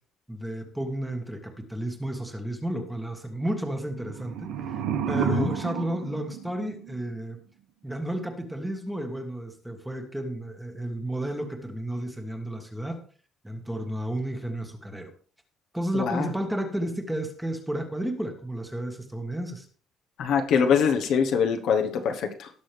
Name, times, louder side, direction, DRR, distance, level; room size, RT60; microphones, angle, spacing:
voice 1, 0.3-7.4 7.8-13.0 13.4-15.1 15.7-19.7, right 1 dB, 5° right, 4 dB, 1.5 m, -32 dB
sound 1, 3.9-7.1, right 9 dB, 85° right, 1.5 m, -31 dB
voice 2, 5.1-5.6 15.9-16.3 20.2-22.5, left 7 dB, 60° left, 5 dB, 1.2 m, -24 dB
18.0 x 6.2 x 3.4 m, 0.43 s
cardioid pair, 160°, 0 cm